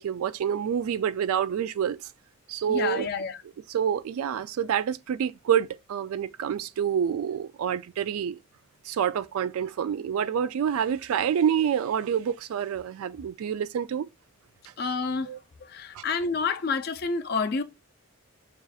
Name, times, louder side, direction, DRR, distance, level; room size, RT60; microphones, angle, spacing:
voice 1, 0.0-2.0 2.5-3.1 3.7-8.4 8.9-14.1 15.3-15.4 15.9-16.0, right 8 dB, 80° right, 0.3 m, -27 dB
voice 2, 2.7-3.4 14.8-15.3 15.6-17.6, left 4 dB, 45° left, 0.4 m, -29 dB
6.9 x 2.4 x 2.4 m
head